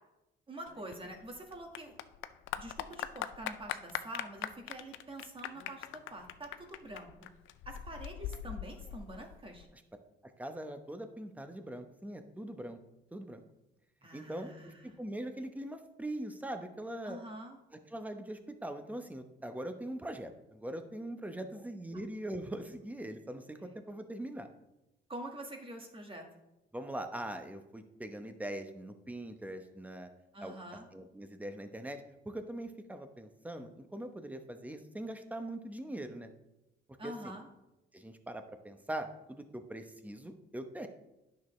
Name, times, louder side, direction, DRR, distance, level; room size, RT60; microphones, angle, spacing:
voice 1, 0.5-2.0 2.5-7.1 7.6-9.7 14.0-15.0 17.0-17.6 21.5-21.6 25.1-26.2 30.3-30.9 37.0-37.5, right 1 dB, 25° right, 2 dB, 1.7 m, -46 dB
Clapping / Applause, 0.7-9.6, left 11 dB, 85° left, 0.5 m, -42 dB
voice 2, 10.4-12.8 13.1-13.4 14.1-17.2 17.9-24.5 26.7-30.1 30.4-30.6 30.9-36.3 37.0-37.3 37.9-40.9, right 1 dB, 5° right, 7 dB, 0.9 m, -42 dB
10.0 x 6.4 x 3.2 m, 0.94 s
cardioid pair, 90°, 20 cm